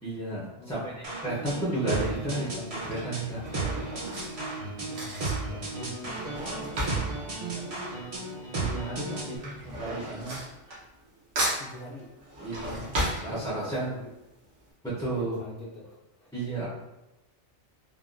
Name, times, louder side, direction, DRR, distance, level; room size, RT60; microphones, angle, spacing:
voice 1, 0.0-3.4 8.6-10.4 12.4-12.9 13.2-13.9 14.8-15.4 16.3-16.7, right 2 dB, 5° left, 0.3 m, -33 dB
voice 2, 0.6-1.0 1.3-1.4 4.9-5.2 5.5-7.9 11.6-12.9 13.3-14.1 15.1-16.7, left 2 dB, 60° left, 0.7 m, -46 dB
sound 1, 1.0-9.4, right 3 dB, 40° right, 0.6 m, -34 dB
Drawer open or close / Cutlery silverware, 1.4-1.7 2.6-8.5 8.7-11.1 11.4-13.9 14.3-14.4 14.6-14.7, right 1 dB, 80° right, 1.2 m, -35 dB
3.5 x 2.2 x 2.4 m
omnidirectional pair, 1.2 m